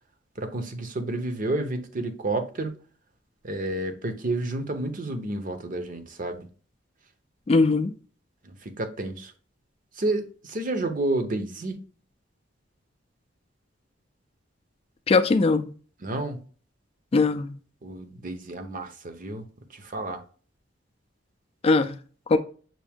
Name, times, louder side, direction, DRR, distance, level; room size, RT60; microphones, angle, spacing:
voice 1, 0.4-2.7 3.4-6.5 8.4-9.3 10.0-11.8 16.0-16.4 17.8-19.4 19.7-20.2, right 2 dB, 45° right, 0.7 m, -30 dB
voice 2, 7.5-7.9 15.1-15.7 17.1-17.5 21.6-21.9 22.3-22.4, left 3 dB, 30° left, 0.4 m, -20 dB
5.9 x 2.6 x 3.5 m
head